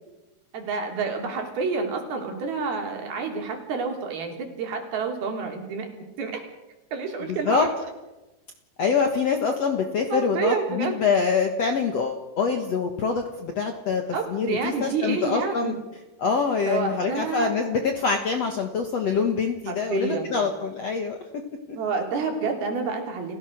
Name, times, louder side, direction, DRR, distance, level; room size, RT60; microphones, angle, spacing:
voice 1, 0.5-5.9 6.2-6.4 6.9-7.7 10.1-10.9 14.1-15.7 16.6-17.5 19.7-20.5 21.8-23.4, right 4 dB, 65° right, 2 dB, 5.0 m, -28 dB
voice 2, 7.3-7.7 8.8-14.0 14.3-15.7 16.2-21.2 21.7-21.8, left 5 dB, 60° left, 4 dB, 1.8 m, -25 dB
30.0 x 16.5 x 6.4 m, 1.1 s
omnidirectional pair, 4.8 m